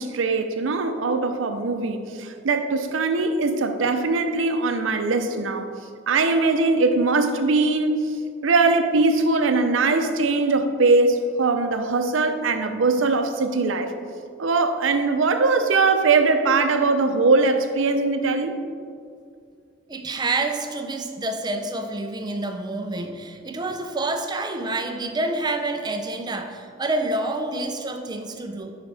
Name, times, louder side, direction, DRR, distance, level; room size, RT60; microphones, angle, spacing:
voice 1, 0.0-5.7 6.1-8.1 8.4-13.9 14.4-18.5, right 3 dB, 85° right, 7 dB, 0.6 m, -21 dB
voice 2, 19.9-28.7, right 2 dB, 20° right, 5 dB, 0.4 m, -28 dB
11.0 x 4.8 x 3.4 m, 2.2 s
head